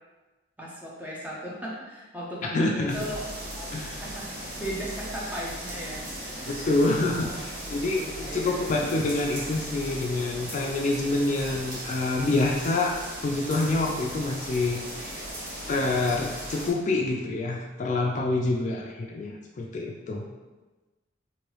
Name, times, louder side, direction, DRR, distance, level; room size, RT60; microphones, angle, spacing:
voice 1, 0.6-3.2 3.6-3.7 4.0-4.3 4.6-6.6 7.0-7.4 7.7-7.8 8.2-8.8, equal, 10° right, -5 dB, 0.6 m, -37 dB
voice 2, 2.5-2.9 3.7-4.0 6.5-15.2 15.7-20.2, left 2 dB, 40° left, -1 dB, 0.3 m, -27 dB
sound 1, 2.9-16.7, right 1 dB, 50° right, 0.8 m, -37 dB
3.1 x 2.6 x 3.0 m, 1.2 s
head